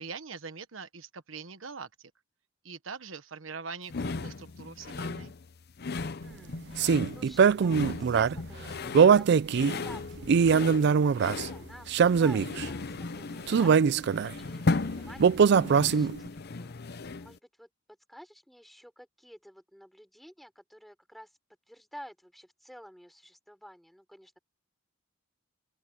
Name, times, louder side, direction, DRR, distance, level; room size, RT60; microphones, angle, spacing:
voice 1, 0.0-2.1 2.6-5.3, right 5 dB, 85° right, 1.3 m, -43 dB
sound 1, 3.9-17.4, left 3 dB, 55° left, 0.7 m, -36 dB
voice 2, 5.9-9.5 9.8-13.9 14.4-16.7 17.2-17.7 18.1-21.3 21.7-24.4, equal, ahead, 4.1 m, -51 dB
sound 2, 6.8-8.3 8.9-9.8 10.2-11.5 11.9-12.6 13.5-14.3 15.2-16.3, right 6 dB, 60° right, 0.4 m, -22 dB
open air
head